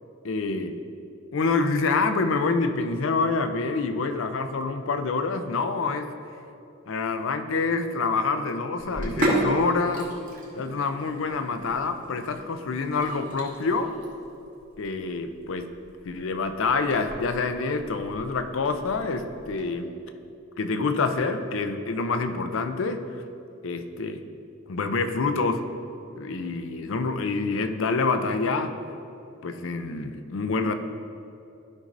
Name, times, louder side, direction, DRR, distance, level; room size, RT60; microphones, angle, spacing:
voice 1, 0.2-0.8 1.3-6.1 6.9-10.1 10.5-13.9 14.8-15.7 16.0-19.9 20.6-23.2 23.6-24.2 24.7-25.7 26.2-28.7 29.4-30.7, left 4 dB, 65° left, 8 dB, 0.5 m, -27 dB
Sink (filling or washing), 8.8-19.6, right 1 dB, 45° right, 1.4 m, -34 dB
13.0 x 5.3 x 2.6 m, 2.7 s
head